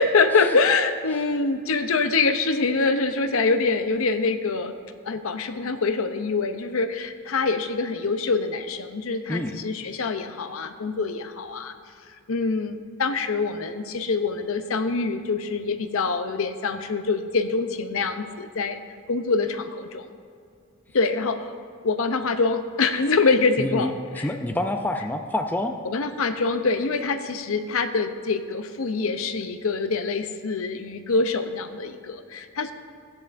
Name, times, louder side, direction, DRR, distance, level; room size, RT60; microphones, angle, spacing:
voice 1, 0.0-4.7 5.0-11.7 12.3-18.8 19.1-20.1 20.9-21.5 21.8-24.3 25.8-32.7, left 4 dB, 65° left, 8 dB, 0.6 m, -25 dB
voice 2, 23.6-25.7, left 1 dB, 10° left, 4 dB, 0.4 m, -27 dB
16.0 x 10.5 x 2.6 m, 2.3 s
head